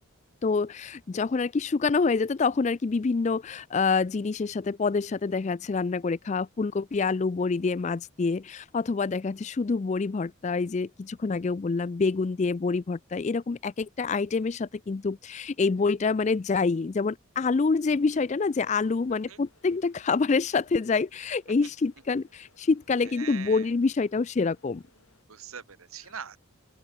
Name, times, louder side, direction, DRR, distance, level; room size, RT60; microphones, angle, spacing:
voice 1, 0.4-24.8, left 4 dB, 35° left, 0.3 m, -27 dB
sound 1, 17.4-25.2, left 3 dB, 90° left, 6.2 m, -65 dB
voice 2, 23.2-23.7 25.3-26.4, right 7 dB, 85° right, 1.4 m, -41 dB
open air
head